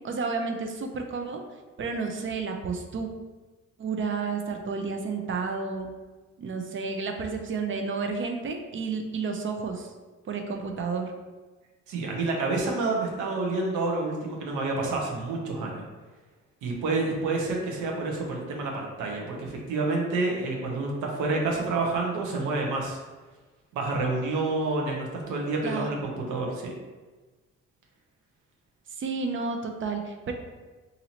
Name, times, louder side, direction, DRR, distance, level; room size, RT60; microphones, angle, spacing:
voice 1, 0.0-1.4 1.8-3.1 3.8-5.9 6.4-9.9 10.3-11.1 25.6-25.9 29.0-30.3, right 4 dB, 40° right, 4 dB, 0.6 m, -31 dB
voice 2, 11.9-15.8 16.6-23.0 23.7-26.7, right 3 dB, 85° right, -1 dB, 0.7 m, -28 dB
2.9 x 2.7 x 4.0 m, 1.3 s
cardioid pair, 90°, 30 cm